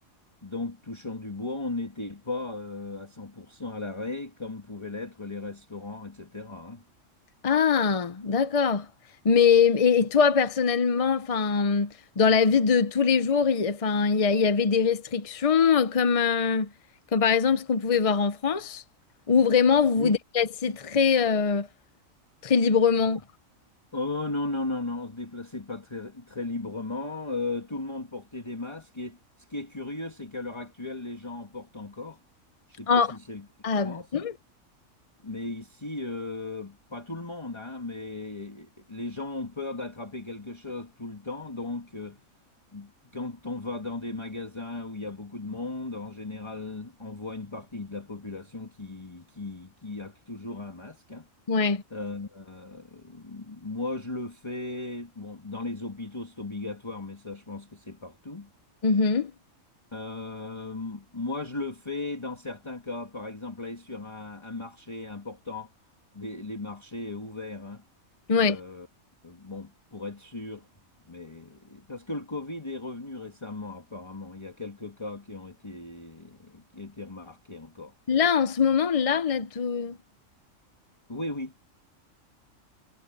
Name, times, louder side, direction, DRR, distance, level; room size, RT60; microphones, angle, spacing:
voice 1, 0.4-6.8 20.0-20.2 23.0-23.2 23.9-29.2 29.5-32.2 32.7-33.5 33.8-34.1 35.2-42.2 42.7-51.3 51.9-58.5 59.9-65.7 66.1-67.8 68.3-68.9 69.2-70.7 71.1-77.9 81.1-81.6, left 2 dB, 20° left, 2.0 m, -36 dB
voice 2, 7.4-8.9 9.2-16.7 17.1-18.8 19.3-21.7 22.4-23.2 32.9-33.1 33.6-34.3 51.5-51.8 58.8-59.3 68.3-68.6 78.1-80.0, left 6 dB, 40° left, 0.5 m, -22 dB
omnidirectional pair, 1.4 m